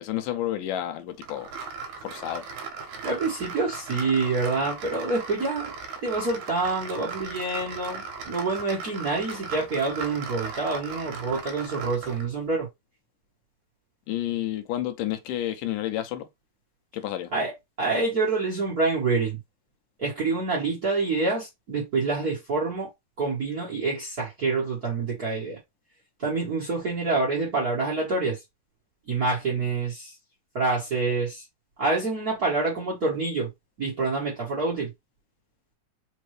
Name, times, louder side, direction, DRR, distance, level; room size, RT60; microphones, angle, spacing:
voice 1, 0.0-1.5 2.0-2.4 14.1-16.3 16.9-17.3, left 12 dB, 85° left, 2.2 m, -30 dB
sound 1, 1.2-12.3, right 5 dB, 75° right, 2.1 m, -38 dB
voice 2, 3.0-5.7 6.0-12.7 17.3-17.5 17.8-19.4 20.0-22.9 23.2-25.6 26.2-28.4 29.1-30.1 30.5-31.4 31.8-33.5 33.8-34.9, right 3 dB, 50° right, 1.1 m, -27 dB
5.2 x 2.7 x 3.2 m
omnidirectional pair, 3.8 m